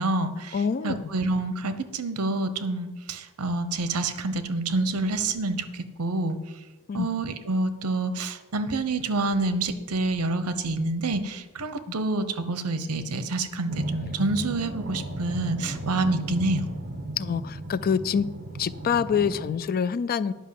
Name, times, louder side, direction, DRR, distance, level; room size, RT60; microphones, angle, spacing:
voice 1, 0.0-6.4 6.9-16.6, right 2 dB, 80° right, 11 dB, 0.9 m, -27 dB
voice 2, 0.5-1.0 6.9-7.1 17.2-18.3 18.6-20.3, left 6 dB, 40° left, 17 dB, 0.4 m, -26 dB
sound 1, 13.7-19.5, right 1 dB, 45° right, 1.2 m, -35 dB
10.0 x 5.5 x 7.6 m, 1.2 s
head